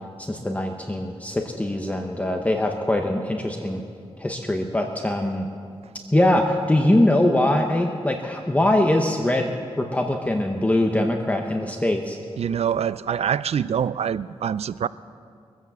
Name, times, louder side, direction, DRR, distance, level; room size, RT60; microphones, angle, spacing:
voice 1, 0.2-3.8 4.2-5.5 6.1-9.5 9.8-12.2, left 1 dB, 15° left, 3 dB, 0.9 m, -22 dB
voice 2, 12.4-14.9, right 8 dB, 75° right, 17 dB, 0.4 m, -25 dB
21.5 x 8.3 x 7.4 m, 2.3 s
wide cardioid pair, 110°, 11 cm